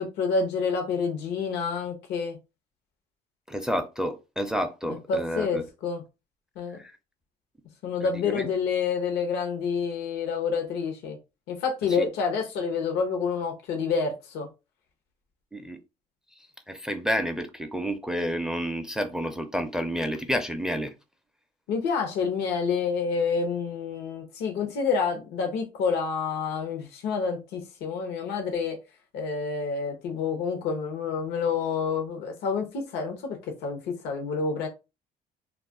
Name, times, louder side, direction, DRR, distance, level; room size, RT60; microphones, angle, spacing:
voice 1, 0.0-2.4 4.9-6.0 6.6-6.8 7.8-11.2 11.5-14.5 21.7-28.8 29.1-34.7, left 5 dB, 85° left, 0.7 m, -28 dB
voice 2, 3.5-5.6 6.8-6.9 8.0-8.5 12.0-12.1 15.5-15.8 16.7-20.9, equal, 5° right, 0.4 m, -30 dB
2.3 x 2.2 x 3.6 m
cardioid pair, 110°, 17 cm